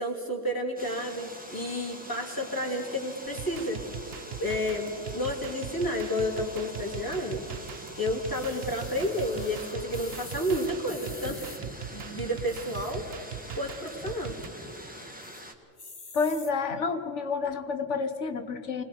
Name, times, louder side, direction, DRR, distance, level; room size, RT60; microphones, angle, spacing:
voice 1, 0.0-3.8 4.4-7.4 8.0-11.4 11.9-13.0 13.6-14.3, equal, 15° left, -2 dB, 3.0 m, -31 dB
sound 1, 0.8-15.5, equal, 5° right, 1.6 m, -44 dB
sound 2, 3.3-14.5, right 9 dB, 60° right, 0.8 m, -41 dB
sound 3, 8.3-11.6 12.4-13.1 13.5-13.6 13.8-13.9 14.3-14.7 15.2-15.4 15.8-16.5 17.2-17.3, left 3 dB, 35° left, 1.5 m, -47 dB
voice 2, 16.1-18.8, left 4 dB, 65° left, 9 dB, 1.5 m, -29 dB
28.5 x 20.5 x 4.6 m, 2.4 s
omnidirectional pair, 1.3 m